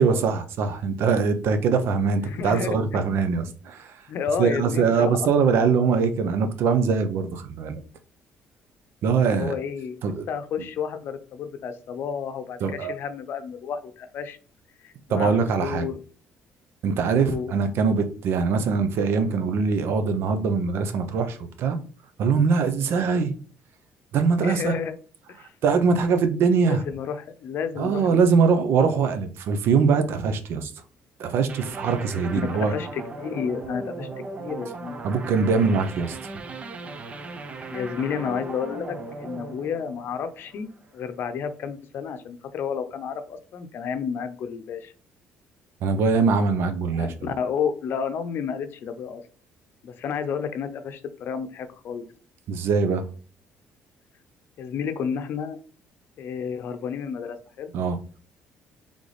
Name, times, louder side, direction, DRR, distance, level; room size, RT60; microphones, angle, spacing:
voice 1, 0.0-4.1 4.4-7.8 9.0-9.5 10.0-10.3 12.6-12.9 15.1-15.9 16.8-21.8 22.2-23.3 24.1-24.8 25.4-26.8 27.8-30.7 31.2-32.7 35.0-36.3 45.8-47.3 52.5-53.1 57.7-58.2, right 5 dB, 70° right, 0.7 m, -22 dB
voice 2, 2.2-3.0 4.1-5.1 9.3-10.0 10.3-14.4 14.8-15.9 17.2-17.5 24.4-24.9 25.3-25.5 26.6-28.2 32.3-34.1 34.4-35.0 37.7-40.7 40.9-44.9 46.9-49.2 49.8-52.1 54.6-55.6 56.2-57.7, left 7 dB, 60° left, 0.6 m, -31 dB
sound 1, 31.5-40.8, right 3 dB, 30° right, 0.6 m, -37 dB
3.9 x 3.5 x 3.2 m
cardioid pair, 110°, 4 cm